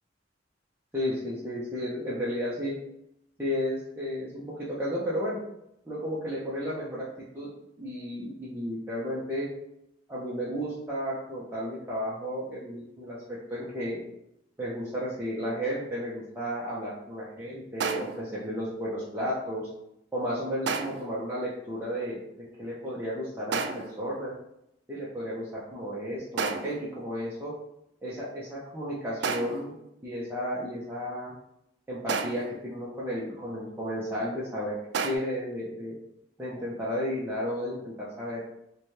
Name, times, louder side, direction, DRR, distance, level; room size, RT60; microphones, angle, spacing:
voice 1, 0.9-2.8 3.4-5.4 5.9-7.0 7.3-7.5 7.8-9.5 10.1-14.0 14.6-19.7 20.1-22.2 22.6-24.3 24.9-27.5 28.0-29.8 30.0-31.3 31.9-34.7 35.0-36.0 36.4-38.4, equal, 10° right, -9 dB, 0.6 m, -33 dB
sound 1, 17.8-18.3 20.7-21.2 23.5-24.0 26.4-26.9 29.2-29.7 32.1-32.6 34.9-35.2, right 5 dB, 65° right, 0.3 m, -31 dB
4.0 x 2.2 x 3.1 m, 0.82 s
head